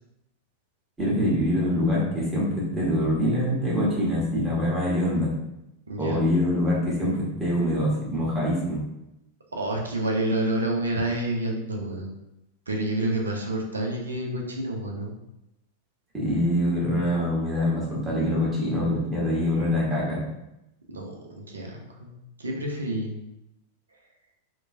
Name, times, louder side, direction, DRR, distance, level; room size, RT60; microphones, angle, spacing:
voice 1, 1.0-5.3 6.0-8.8 16.1-20.2, left 1 dB, 10° right, -7 dB, 1.2 m, -24 dB
voice 2, 5.9-6.2 9.5-12.1 12.7-15.1 20.9-22.1 22.4-23.2, right 1 dB, 75° right, 1 dB, 0.5 m, -29 dB
2.9 x 2.2 x 2.6 m, 0.89 s
figure-of-eight pair, 90°, 0 cm